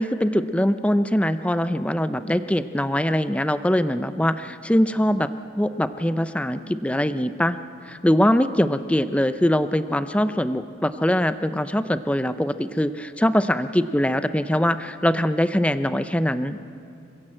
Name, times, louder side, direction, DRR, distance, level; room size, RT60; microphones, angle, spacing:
voice 1, 0.0-5.3 5.6-7.6 7.8-16.6, equal, 5° left, 11 dB, 0.5 m, -22 dB
26.0 x 16.0 x 7.7 m, 2.5 s
head